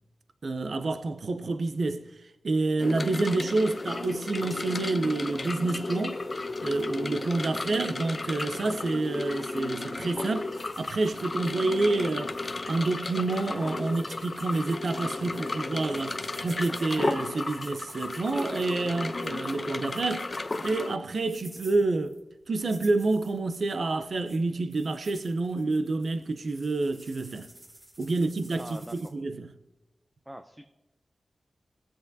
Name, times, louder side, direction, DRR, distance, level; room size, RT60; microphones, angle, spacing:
voice 1, 0.4-2.1 2.4-6.2 6.6-12.4 12.7-20.4 20.6-22.2 22.5-27.5 28.0-29.5, right 3 dB, 65° right, 0.5 m, -28 dB
sound 1, 2.8-21.0, left 3 dB, 40° left, 0.5 m, -34 dB
sound 2, 10.5-29.1, right 1 dB, 35° right, 1.8 m, -54 dB
voice 2, 28.5-29.1 30.3-30.7, right 1 dB, 10° right, 0.5 m, -43 dB
18.0 x 7.5 x 2.7 m
wide cardioid pair, 95°, 0 cm